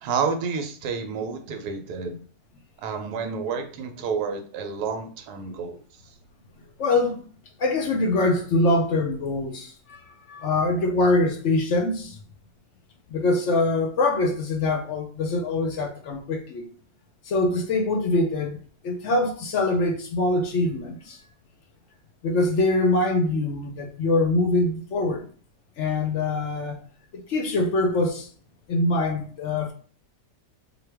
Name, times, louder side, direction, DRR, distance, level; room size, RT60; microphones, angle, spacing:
voice 1, 0.0-2.2 2.8-5.8, right 5 dB, 80° right, 1.2 m, -29 dB
voice 2, 6.8-7.2 7.6-12.2 13.1-16.7 17.2-21.2 22.2-25.3 25.8-26.8 27.1-28.3 28.7-29.7, left 2 dB, 65° left, 0.8 m, -24 dB
4.3 x 2.2 x 3.4 m
omnidirectional pair, 1.7 m